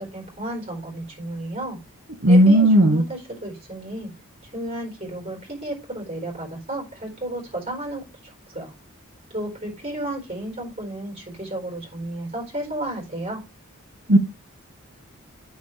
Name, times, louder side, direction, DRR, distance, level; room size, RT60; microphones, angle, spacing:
voice 1, 0.0-1.8 2.3-4.1 4.5-8.7 9.3-13.4, right 1 dB, 25° right, 4.2 m, -33 dB
voice 2, 2.2-3.0 14.1-14.2, right 1 dB, 55° right, 0.9 m, -14 dB
8.5 x 6.5 x 3.2 m
head